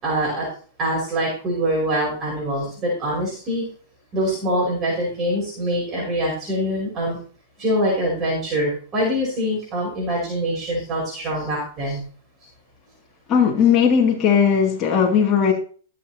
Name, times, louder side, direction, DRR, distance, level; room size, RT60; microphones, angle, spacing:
voice 1, 0.0-0.5 0.8-3.6 4.1-7.2 7.6-12.0, equal, 25° right, -5 dB, 5.9 m, -24 dB
voice 2, 13.3-15.5, left 7 dB, 30° left, -1 dB, 2.3 m, -17 dB
20.5 x 7.5 x 3.0 m, 0.43 s
hypercardioid pair, 140°, 0 cm